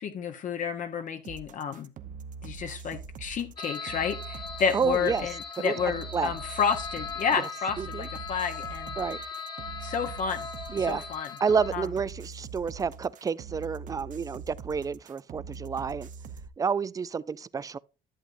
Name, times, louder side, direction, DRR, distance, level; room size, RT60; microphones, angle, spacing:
voice 1, 0.0-1.9 2.4-9.0 9.8-10.5 10.8-11.3 11.7-11.9, left 6 dB, 50° left, 0.8 m, -30 dB
sound 1, 1.2-16.5, right 5 dB, 50° right, 0.8 m, -43 dB
sound 2, 3.6-11.7, left 5 dB, 25° left, 1.2 m, -39 dB
voice 2, 4.7-5.3 5.6-5.8 6.1-6.3 7.4-7.5 7.8-8.1 9.0-9.2 10.7-11.0 11.4-16.1 16.6-17.8, right 6 dB, 20° right, 0.3 m, -29 dB
11.0 x 7.6 x 2.5 m
cardioid pair, 110°, 17 cm